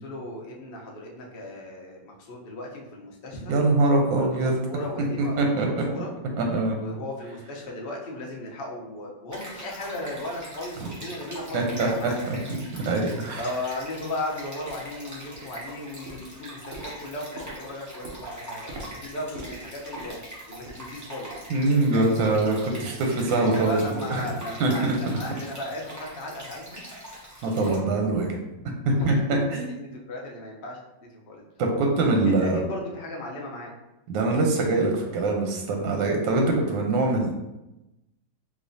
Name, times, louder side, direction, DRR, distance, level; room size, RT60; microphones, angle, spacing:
voice 1, 0.0-3.6 4.1-6.1 6.8-12.2 13.4-20.2 20.5-21.3 23.3-26.8 28.9-31.8 32.2-33.7, left 1 dB, 85° left, -2 dB, 0.5 m, -36 dB
voice 2, 3.5-4.6 5.2-5.8 6.4-6.8 10.8-10.9 11.5-11.9 12.3-13.4 21.5-24.3 24.6-25.0 27.4-28.4 28.9-29.6 31.6-32.6 34.1-37.3, right 2 dB, 85° right, 1 dB, 1.4 m, -23 dB
Stream, 9.3-27.8, right 1 dB, 20° right, 0.5 m, -42 dB
sound 1, 12.7-12.8 13.3-13.4 14.0-14.1 14.7-15.0 15.3-15.8 16.1-21.0 21.3-21.6 21.9-22.1 22.7-22.8, right 1 dB, 60° right, 0.9 m, -44 dB
4.0 x 2.9 x 2.6 m, 0.95 s
omnidirectional pair, 2.0 m